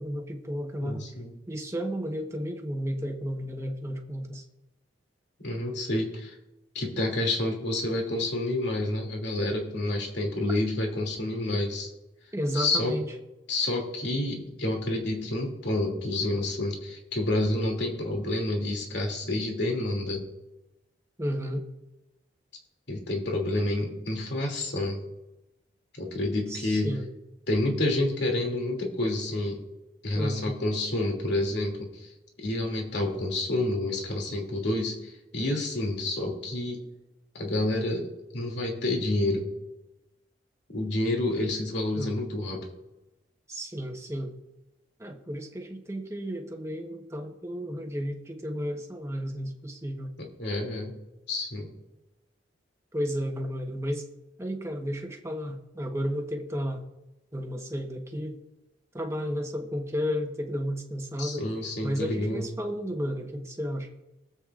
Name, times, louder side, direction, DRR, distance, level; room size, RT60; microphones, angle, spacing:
voice 1, 0.0-1.1 1.5-4.4 11.5-11.6 12.3-13.1 21.2-21.7 26.5-27.1 30.1-30.6 42.0-42.2 43.5-44.4 45.0-50.1 52.9-54.1 54.4-56.8 57.3-58.4 58.9-61.5 61.8-63.9, equal, 15° right, 3 dB, 1.1 m, -33 dB
voice 2, 0.8-1.3 5.4-6.3 6.7-11.9 12.5-13.0 13.5-20.3 22.9-25.0 25.9-26.9 27.5-29.6 30.0-32.1 32.4-36.9 37.3-39.5 40.7-42.7 50.2-51.0 51.3-51.7 61.2-62.5, left 1 dB, 65° left, 0 dB, 2.7 m, -29 dB
23.5 x 8.1 x 2.5 m, 0.97 s
head